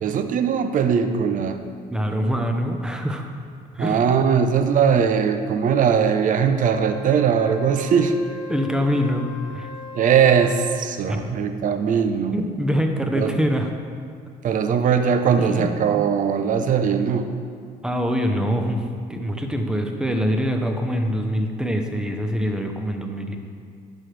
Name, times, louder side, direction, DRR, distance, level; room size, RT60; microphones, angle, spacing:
voice 1, 0.0-1.6 3.8-8.1 9.9-12.4 13.1-13.4 14.4-17.3, right 7 dB, 50° right, 8 dB, 0.6 m, -20 dB
voice 2, 1.9-3.2 3.7-4.0 8.5-9.7 11.1-11.2 12.3-13.7 15.4-16.0 17.8-23.4, equal, 5° right, 4 dB, 0.7 m, -24 dB
Wind instrument woodwind instrument, 6.6-11.0, left 4 dB, 25° left, 1.0 m, -39 dB
11.0 x 6.2 x 3.3 m, 2.3 s
cardioid pair, 110°, 17 cm